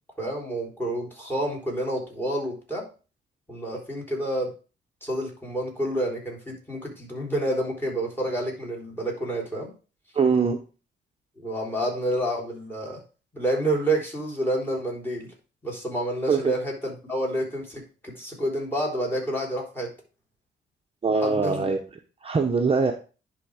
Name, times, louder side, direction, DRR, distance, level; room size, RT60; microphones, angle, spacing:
voice 1, 0.2-2.9 3.5-4.5 5.0-9.7 11.4-13.0 13.3-15.3 15.6-19.9 21.2-21.7, right 1 dB, 10° left, 0 dB, 3.6 m, -29 dB
voice 2, 10.1-10.6 16.3-16.5 21.0-21.8 22.2-22.9, right 5 dB, 30° right, 4 dB, 0.9 m, -22 dB
10.5 x 3.6 x 4.9 m, 0.34 s
cardioid pair, 90°, 20 cm